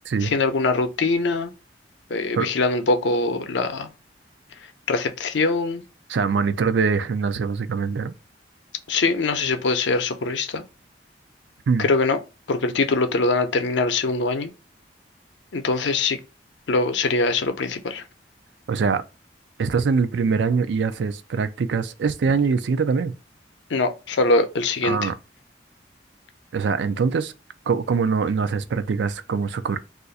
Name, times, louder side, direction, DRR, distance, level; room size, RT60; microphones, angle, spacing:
voice 1, 0.2-1.5 2.1-3.9 4.9-5.8 8.9-10.6 11.8-12.2 12.5-14.5 15.5-16.2 16.7-18.0 23.7-25.1, left 3 dB, 85° left, 0.5 m, -22 dB
voice 2, 6.1-8.1 11.7-11.9 18.7-19.0 19.6-23.1 24.8-25.1 26.5-27.3 27.7-29.8, right 5 dB, 75° right, 0.4 m, -23 dB
2.5 x 2.4 x 3.9 m
head